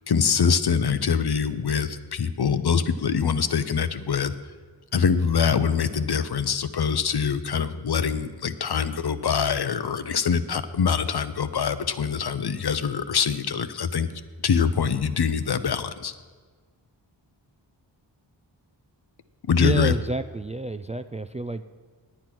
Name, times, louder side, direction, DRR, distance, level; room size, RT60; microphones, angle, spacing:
voice 1, 0.1-4.3 4.9-14.1 14.4-16.1 19.5-19.9, left 6 dB, 60° left, 12 dB, 0.7 m, -24 dB
voice 2, 19.6-21.6, right 2 dB, 15° right, 10 dB, 0.3 m, -29 dB
9.3 x 8.7 x 6.0 m, 1.5 s
cardioid pair, 40°, 45 cm